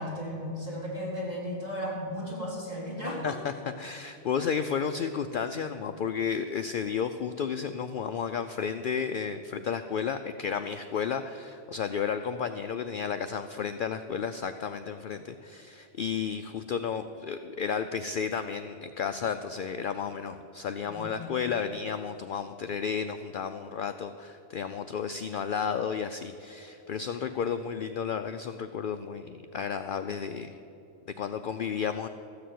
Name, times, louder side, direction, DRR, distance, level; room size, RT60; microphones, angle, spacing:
voice 1, 0.0-3.4 20.9-21.4, equal, 35° right, -6 dB, 3.8 m, -35 dB
voice 2, 3.2-30.6 31.1-32.1, left 6 dB, 60° left, 8 dB, 0.6 m, -32 dB
14.0 x 6.7 x 9.2 m, 2.8 s
omnidirectional pair, 1.2 m